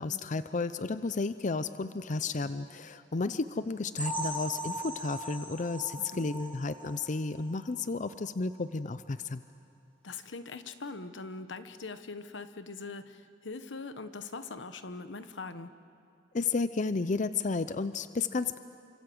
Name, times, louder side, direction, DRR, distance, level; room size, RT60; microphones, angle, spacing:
voice 1, 0.0-9.4 16.3-18.6, left 3 dB, 40° left, 12 dB, 0.6 m, -32 dB
sound 1, 4.0-7.6 8.0-8.1 8.5-8.6 9.1-9.2, right 1 dB, 10° left, 7.2 m, -39 dB
voice 2, 6.0-6.3 10.0-15.7, left 3 dB, 85° left, 11 dB, 1.1 m, -42 dB
28.5 x 25.5 x 7.9 m, 2.4 s
head